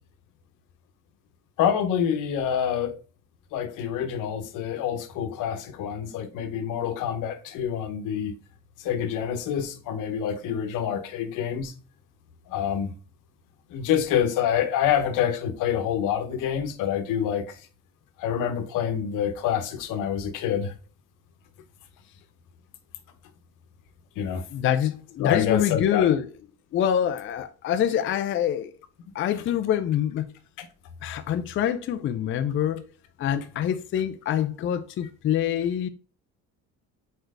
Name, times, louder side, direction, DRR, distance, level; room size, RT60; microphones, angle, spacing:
voice 1, 1.6-2.9 3.5-8.3 8.8-11.7 12.5-12.9 13.7-17.6 18.2-20.7 24.2-24.4 25.2-26.1 30.6-30.7, left 9 dB, 85° left, 1.0 m, -27 dB
voice 2, 24.5-26.3 26.7-28.7 29.1-30.3 31.0-32.8 33.2-35.9, left 10 dB, 40° left, 0.5 m, -25 dB
4.5 x 4.5 x 4.8 m
cardioid pair, 145°, 31 cm